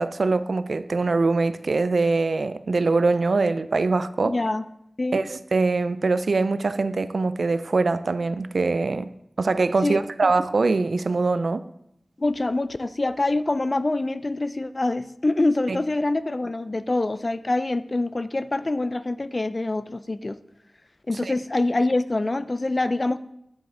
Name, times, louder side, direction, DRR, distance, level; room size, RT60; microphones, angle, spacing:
voice 1, 0.0-4.4 5.1-9.1 9.4-11.6 15.7-15.8 21.2-21.4, right 3 dB, 80° right, 0.3 m, -23 dB
voice 2, 4.2-4.6 5.0-5.2 9.8-10.3 12.2-20.4 21.1-23.2, left 2 dB, 45° left, 0.4 m, -25 dB
9.4 x 5.1 x 3.7 m
wide cardioid pair, 50°, 0 cm